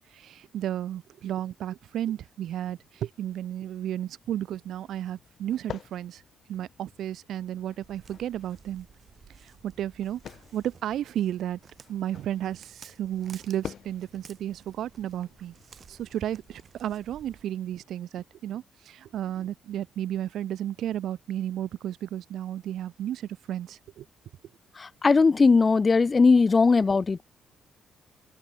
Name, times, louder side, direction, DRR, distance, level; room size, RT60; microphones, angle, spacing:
voice 1, 0.1-6.2 6.5-8.9 9.6-10.2 10.5-11.6 11.9-15.5 15.9-24.0, right 11 dB, 75° right, 1.0 m, -33 dB
sound 1, 4.2-16.6, left 8 dB, 60° left, 3.4 m, -48 dB
Walk footsteps, 7.8-17.4, right 6 dB, 45° right, 4.9 m, -54 dB
voice 2, 24.8-27.2, left 4 dB, 30° left, 0.3 m, -19 dB
cardioid pair, 90°, 0 cm